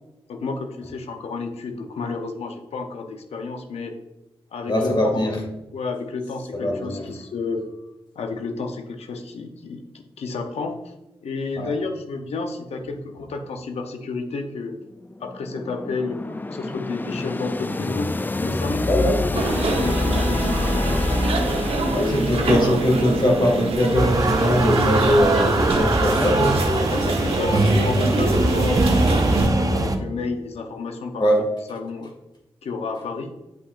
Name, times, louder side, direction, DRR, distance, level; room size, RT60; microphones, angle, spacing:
voice 1, 0.3-4.0 4.5-5.3 5.7-7.6 8.1-10.9 11.2-14.8 15.2-18.1 18.4-19.5 19.8-21.3 21.8-22.8 23.2-23.3 26.9-31.3 31.7-32.1 32.6-33.3, left 3 dB, 85° left, 5 dB, 0.8 m, -31 dB
voice 2, 4.7-5.4 6.5-7.1 11.6-11.7 18.9-19.2 21.9-26.6 31.2-31.4, left 1 dB, 50° left, 0 dB, 2.2 m, -21 dB
sound 1, 15.0-23.9, left 2 dB, 20° left, 0.4 m, -27 dB
sound 2, 19.3-29.5, right 3 dB, 70° right, 1.1 m, -25 dB
sound 3, 24.0-30.0, right 2 dB, 35° right, 0.8 m, -21 dB
7.7 x 5.6 x 2.5 m, 0.97 s
cardioid pair, 45°, 10 cm